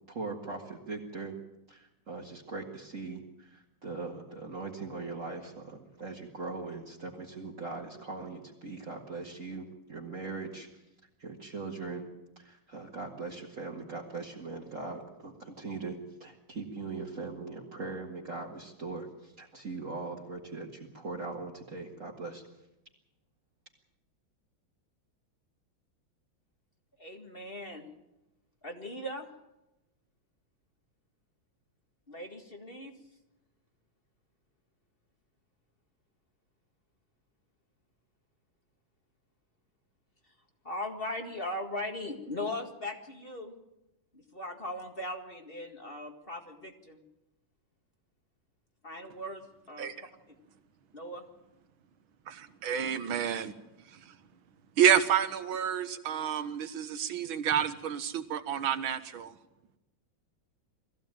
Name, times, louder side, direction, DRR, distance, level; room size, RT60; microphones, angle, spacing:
voice 1, 0.1-1.3 1.7-10.7 11.2-12.1 12.4-22.4, right 3 dB, 40° right, -3 dB, 2.1 m, -40 dB
voice 2, 27.0-27.9 28.6-29.3 32.1-32.9 40.6-43.5 44.1-47.0 48.8-49.9 50.9-51.2, left 1 dB, 30° left, 3 dB, 1.9 m, -39 dB
voice 3, 49.8-50.1 52.3-53.5 53.9-54.2 54.8-59.4, right 9 dB, 80° right, 11 dB, 2.0 m, -29 dB
21.5 x 15.0 x 9.0 m, 0.97 s
omnidirectional pair, 2.2 m